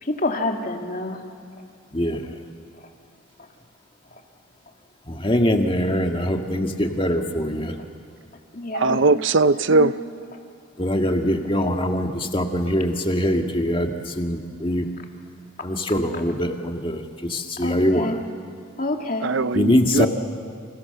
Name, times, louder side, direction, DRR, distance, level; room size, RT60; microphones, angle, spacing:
voice 1, 0.0-1.2 8.5-9.0 9.7-9.9 17.6-18.2 18.8-19.3, left 2 dB, 40° left, 3 dB, 2.4 m, -27 dB
voice 2, 1.9-2.3 5.1-7.7 10.8-14.9 15.6-18.2 19.5-20.1, equal, 25° left, 4 dB, 1.8 m, -23 dB
voice 3, 8.7-9.9 19.2-20.1, right 3 dB, 60° right, 14 dB, 0.6 m, -19 dB
29.5 x 28.5 x 6.9 m, 2.3 s
head